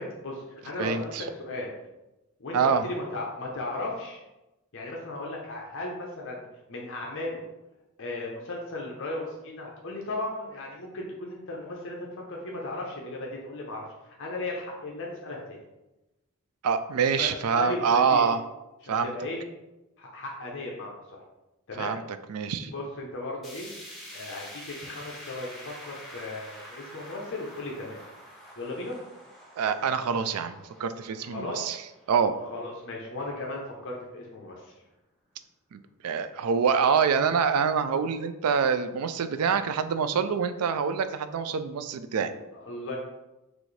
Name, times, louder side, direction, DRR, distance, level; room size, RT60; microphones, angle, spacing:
voice 1, 0.0-1.1 1.4-1.7 2.4-4.2 4.7-6.4 6.7-7.4 8.0-15.6 17.2-18.3 18.8-19.4 20.0-21.2 21.7-21.9 22.7-23.7 24.1-28.0 28.6-29.0 31.3-31.6 32.5-34.7 42.3-43.0, left 2 dB, 60° left, -2 dB, 0.8 m, -36 dB
voice 2, 0.8-1.3 2.5-2.9 16.6-18.4 18.9-19.1 21.8-22.0 22.3-22.7 29.6-31.8 32.1-32.4 35.7-42.3, right 6 dB, 80° right, 11 dB, 0.4 m, -26 dB
sound 1, 23.4-33.6 34.0-34.1 34.5-34.6 35.4-35.5, equal, ahead, 1.3 m, -47 dB
6.2 x 2.6 x 3.2 m, 0.99 s
head